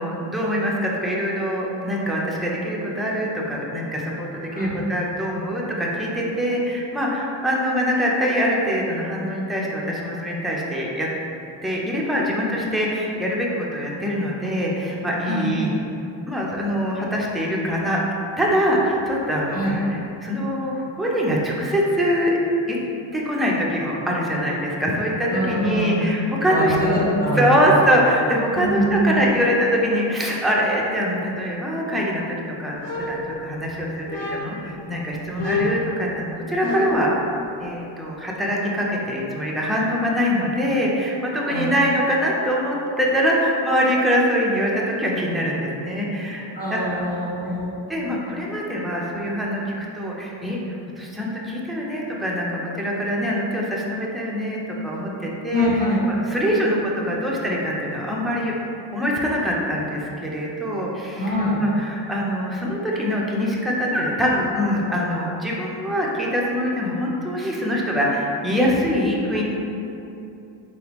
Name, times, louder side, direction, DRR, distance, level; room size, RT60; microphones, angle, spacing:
voice 1, 0.0-11.1 11.6-15.8 16.3-18.0 18.4-22.4 22.7-22.8 23.1-26.7 27.4-37.1 37.6-47.1 47.9-49.6 49.9-50.6 51.0-55.7 56.3-58.6 58.9-69.4, equal, ahead, -4 dB, 0.6 m, -23 dB
voice 2, 25.3-26.1 26.5-27.4 27.7-27.8 28.5-29.2 35.3-35.7 41.4-41.7 46.5-47.8 55.5-56.0 61.2-61.6, equal, 20° left, -8 dB, 1.1 m, -24 dB
sound 1, 32.8-33.7 34.1-34.7 35.4-37.1, left 2 dB, 45° left, 0.9 m, -28 dB
4.0 x 3.4 x 3.0 m, 2.8 s
cardioid pair, 90°, 47 cm